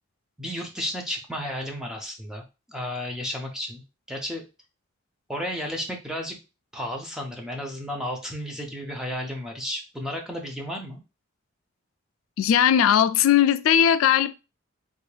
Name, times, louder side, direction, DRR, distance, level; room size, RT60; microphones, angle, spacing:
voice 1, 0.4-2.4 2.7-3.8 4.1-4.4 5.3-6.4 6.7-11.0, equal, 5° right, 0.7 m, -33 dB
voice 2, 12.4-14.3, left 9 dB, 90° left, 0.3 m, -19 dB
3.5 x 2.6 x 3.2 m
head